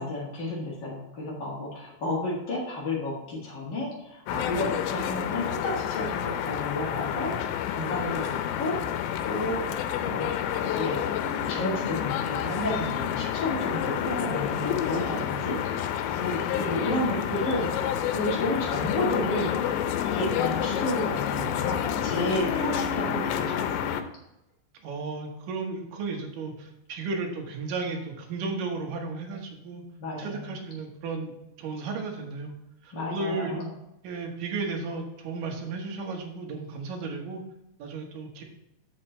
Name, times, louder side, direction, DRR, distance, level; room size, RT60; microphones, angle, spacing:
voice 1, 0.0-10.3 10.6-15.6 16.1-24.0 30.0-30.6 32.9-33.7, left 1 dB, 55° left, -5 dB, 1.2 m, -32 dB
sound 1, 4.3-24.0, left 9 dB, 85° left, 2.9 m, -29 dB
voice 2, 24.8-29.8 30.2-32.5 32.8-33.6 34.0-37.4 37.8-38.4, right 4 dB, 65° right, 2 dB, 2.3 m, -34 dB
7.7 x 6.5 x 4.4 m, 0.86 s
omnidirectional pair, 5.1 m